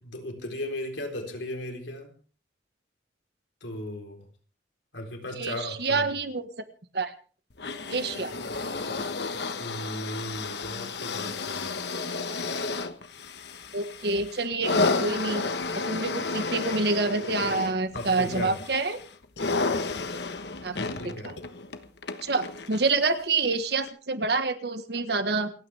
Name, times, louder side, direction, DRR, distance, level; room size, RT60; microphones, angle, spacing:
voice 1, 0.0-2.1 3.6-4.2 4.9-6.1 9.6-11.7 17.9-18.6 20.7-21.3, left 1 dB, 85° left, 3 dB, 4.0 m, -36 dB
voice 2, 5.3-6.5 6.9-7.1 7.9-8.3 13.7-15.4 15.7-19.0 20.6-20.8 21.2-21.4 22.2-25.5, right 3 dB, 60° right, 9 dB, 1.6 m, -27 dB
sound 1, 7.6-23.0 23.9-24.0, left 3 dB, 70° left, 1.3 m, -32 dB
28.5 x 9.5 x 3.5 m, 0.40 s
head